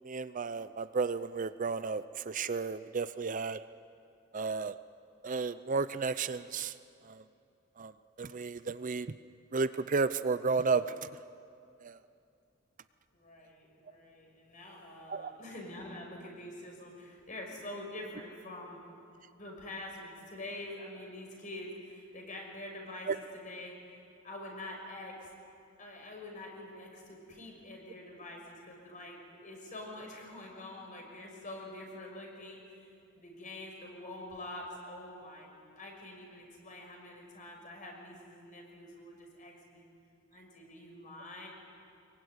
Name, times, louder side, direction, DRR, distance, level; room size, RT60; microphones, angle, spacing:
voice 1, 0.0-3.6 4.3-4.8 5.2-6.7 7.0-7.2 7.8-7.9 8.2-9.2 9.5-11.1 11.8-12.0 15.1-15.3 23.1-23.2, right 4 dB, 40° right, 13 dB, 0.5 m, -33 dB
voice 2, 13.1-18.8 19.3-23.7 24.2-25.3 25.8-32.9 33.1-39.8 40.3-41.5, left 1 dB, 40° left, 1 dB, 6.1 m, -46 dB
25.0 x 22.5 x 9.6 m, 2.5 s
head